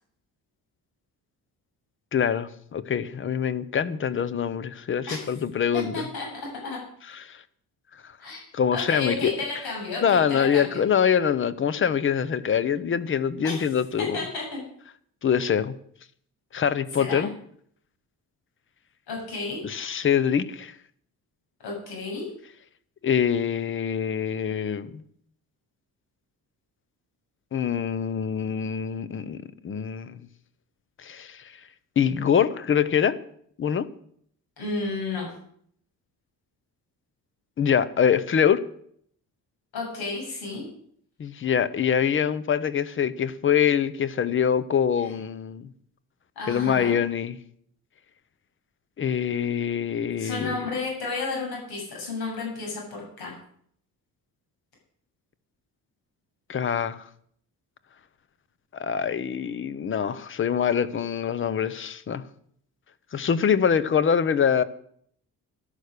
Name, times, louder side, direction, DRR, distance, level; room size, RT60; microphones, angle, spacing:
voice 1, 2.1-5.9 7.2-7.4 8.5-9.3 10.0-14.2 15.2-15.7 16.5-17.3 19.6-20.7 23.0-25.0 27.5-29.4 29.6-30.2 31.0-31.5 32.0-33.2 33.6-33.9 37.6-38.6 41.2-45.7 46.5-47.4 49.0-50.6 56.5-57.1 58.7-62.2 63.1-64.6, left 8 dB, 35° left, 0.7 m, -24 dB
voice 2, 5.7-6.3 6.6-6.8 8.2-8.4 8.7-10.8 13.4-14.6 16.9-17.3 19.1-19.6 21.6-22.3 34.6-35.3 39.7-40.7 45.0-45.1 46.4-47.0 50.2-53.3, left 3 dB, 80° left, 7.6 m, -32 dB
13.0 x 11.5 x 6.6 m
cardioid pair, 170°, 38 cm